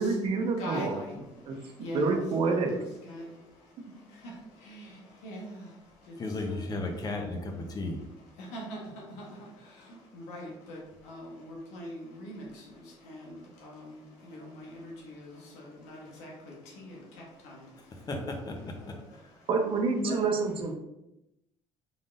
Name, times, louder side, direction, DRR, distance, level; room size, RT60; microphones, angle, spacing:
voice 1, 0.0-0.9 1.5-1.6 1.9-2.7 3.9-4.0 19.5-20.7, right 4 dB, 55° right, 0.8 m, -27 dB
voice 2, 0.6-6.7 8.4-18.1 18.8-19.5 20.0-20.3, equal, 85° left, 1.2 m, -44 dB
voice 3, 6.2-8.0 17.9-18.9, left 2 dB, 35° left, 0.8 m, -34 dB
3.8 x 3.6 x 2.5 m
cardioid pair, 95°, 11 cm